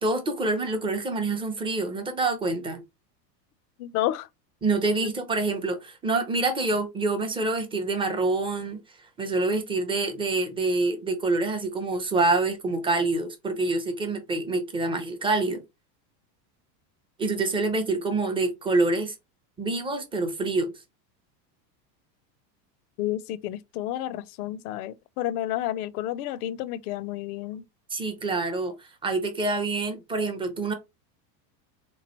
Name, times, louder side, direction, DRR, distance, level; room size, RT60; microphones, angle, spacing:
voice 1, 0.0-2.8 4.6-8.8 9.2-15.6 17.2-19.1 19.6-20.7 27.9-30.7, right 3 dB, 10° right, 0.5 m, -26 dB
voice 2, 3.8-4.3 5.0-5.1 23.0-27.6, left 13 dB, 65° left, 0.5 m, -30 dB
3.6 x 3.0 x 2.9 m
supercardioid pair, 135°, 50 cm